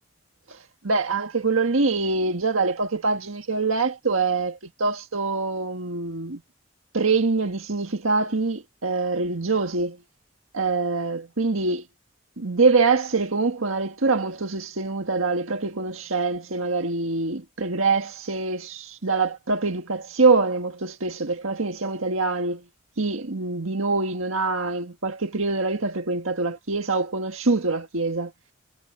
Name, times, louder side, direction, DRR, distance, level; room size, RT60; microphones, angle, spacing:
voice 1, 0.8-6.4 6.9-10.0 10.5-11.8 12.4-22.6 23.0-28.3, right 3 dB, 85° right, 1.7 m, -24 dB
head